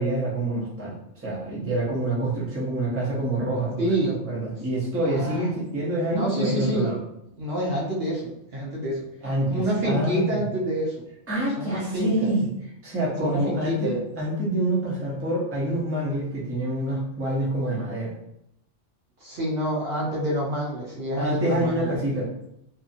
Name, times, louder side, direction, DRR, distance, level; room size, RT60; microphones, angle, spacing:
voice 1, 0.0-7.0 9.2-10.4 11.3-12.5 12.8-18.1 21.2-22.3, right 1 dB, 15° right, -6 dB, 0.6 m, -27 dB
voice 2, 3.8-4.2 5.0-5.5 6.1-6.9 7.4-9.0 9.5-11.0 11.6-12.3 13.2-14.0 19.2-21.9, right 1 dB, 60° right, -4 dB, 0.9 m, -27 dB
2.7 x 2.6 x 2.5 m, 0.77 s
omnidirectional pair, 1.2 m